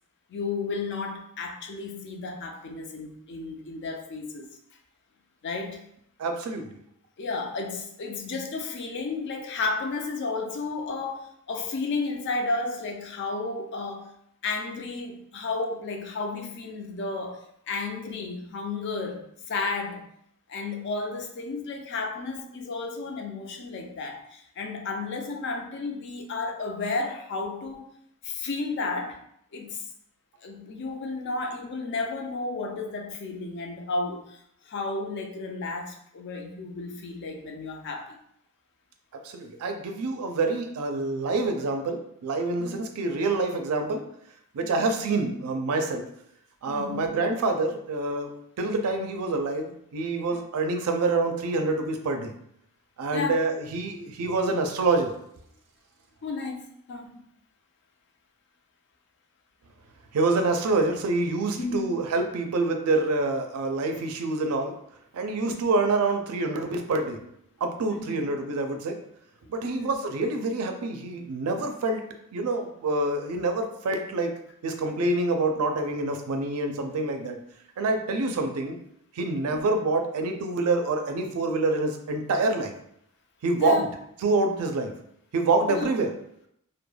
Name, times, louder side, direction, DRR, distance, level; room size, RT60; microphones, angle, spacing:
voice 1, 0.3-4.4 5.4-5.8 7.2-14.1 14.4-17.4 17.7-20.0 20.5-27.9 28.2-29.2 29.5-29.8 30.4-34.4 34.6-38.2 42.6-42.9 44.6-44.9 46.7-47.1 50.3-50.4 53.1-53.4 56.2-56.6 56.9-57.1 61.6-61.8 65.4-65.7 67.9-68.2 69.6-69.9 79.5-79.6 83.6-83.8 85.7-85.9, left 3 dB, 50° left, 3 dB, 0.4 m, -32 dB
voice 2, 6.2-6.7 39.1-44.0 44.5-46.1 46.6-52.3 53.0-55.1 60.1-64.8 65.1-67.2 67.6-69.0 69.5-72.0 72.3-74.3 74.6-77.4 77.8-78.8 79.1-82.7 83.4-83.9 84.2-84.9 85.3-86.1, right 3 dB, 75° right, 5 dB, 0.4 m, -26 dB
2.2 x 2.1 x 3.1 m, 0.72 s
head